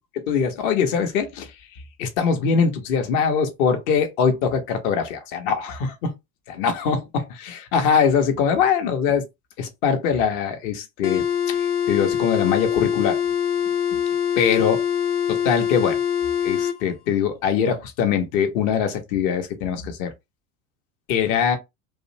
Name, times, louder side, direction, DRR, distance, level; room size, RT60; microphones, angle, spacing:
voice 1, 0.3-6.1 6.5-9.2 9.6-13.2 13.9-14.0 14.4-14.8 15.3-16.0 16.4-20.1 21.1-21.6, left 7 dB, 20° left, 0.3 m, -22 dB
sound 1, 11.0-16.8, left 8 dB, 90° left, 0.6 m, -23 dB
2.5 x 2.0 x 2.6 m
figure-of-eight pair, 80°, 44 cm